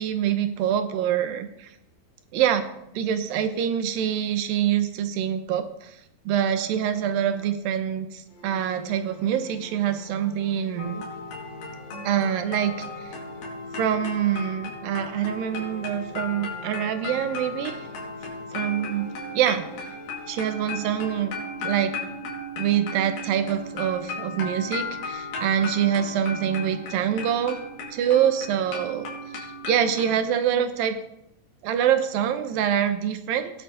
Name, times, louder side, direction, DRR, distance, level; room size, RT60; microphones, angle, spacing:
voice 1, 0.0-1.7 2.3-2.7 2.9-6.0 6.3-11.0 12.0-13.1 13.8-17.8 18.5-19.1 19.3-19.7 20.3-21.4 21.6-21.9 22.6-27.6 27.9-29.1 29.4-31.0 31.6-33.5, right 9 dB, 75° right, 9 dB, 2.7 m, -25 dB
sound 1, 6.4-7.9 8.3-14.7 15.1-21.6, left 1 dB, 45° left, 3.3 m, -48 dB
sound 2, 10.8-30.2, left 2 dB, 90° left, 4.4 m, -36 dB
19.0 x 7.6 x 3.9 m, 0.80 s
omnidirectional pair, 4.2 m